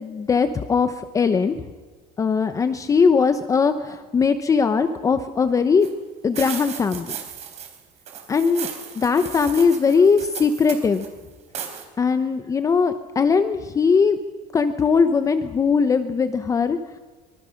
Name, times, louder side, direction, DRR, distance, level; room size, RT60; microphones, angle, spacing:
voice 1, 0.0-1.6 2.2-5.9 6.2-7.2 8.3-8.7 8.9-11.1 12.0-14.2 14.5-16.8, left 5 dB, 20° left, 10 dB, 0.9 m, -20 dB
sound 1, 5.8-5.9 6.3-7.8 8.1-11.1 11.5-11.8, right 8 dB, 45° right, 4.1 m, -35 dB
25.0 x 23.0 x 6.5 m, 1.3 s
cardioid pair, 170°, 16 cm